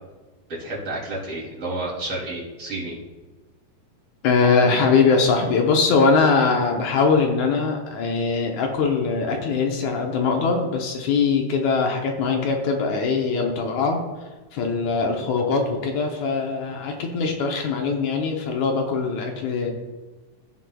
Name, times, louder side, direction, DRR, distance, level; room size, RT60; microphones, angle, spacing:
voice 1, 0.6-2.9, right 2 dB, 50° right, -6 dB, 3.6 m, -30 dB
voice 2, 4.2-19.7, left 4 dB, 75° left, 2 dB, 2.1 m, -22 dB
16.0 x 5.5 x 2.3 m, 1.2 s
omnidirectional pair, 3.6 m